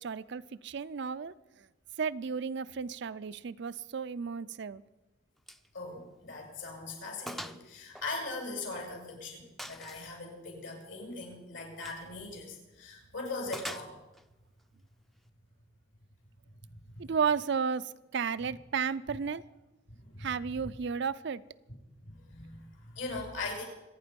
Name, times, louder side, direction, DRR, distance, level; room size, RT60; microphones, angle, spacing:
voice 1, 0.0-1.3 2.0-4.8 17.0-19.4 20.2-21.4, right 6 dB, 65° right, 15 dB, 0.5 m, -33 dB
Gunshot gunfire, 5.5-5.7 6.0-6.1 6.6-6.7 7.3-7.6 8.0-8.9 9.6-10.1 11.7-12.1 13.5-14.3, equal, ahead, 0.5 m, -43 dB
voice 2, 5.7-13.9 16.9-17.0 20.0-20.3 22.0-23.6, left 3 dB, 80° left, 1 dB, 5.8 m, -40 dB
26.0 x 9.5 x 5.3 m, 1.0 s
head